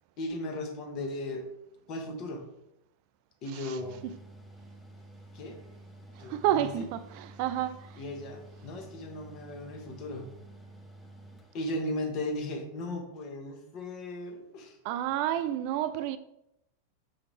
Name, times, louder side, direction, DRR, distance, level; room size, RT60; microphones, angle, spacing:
voice 1, 0.2-1.5 1.9-2.4 3.4-4.0 5.3-5.6 6.2-6.7 8.0-10.3 11.5-14.8, left 1 dB, 40° left, 1.2 m, -36 dB
Mechanical fan, 3.8-12.2, right 1 dB, 10° left, 0.9 m, -51 dB
voice 2, 6.2-8.0 14.8-16.2, right 11 dB, 45° right, 0.3 m, -30 dB
6.1 x 4.9 x 3.3 m
figure-of-eight pair, 90°, 0 cm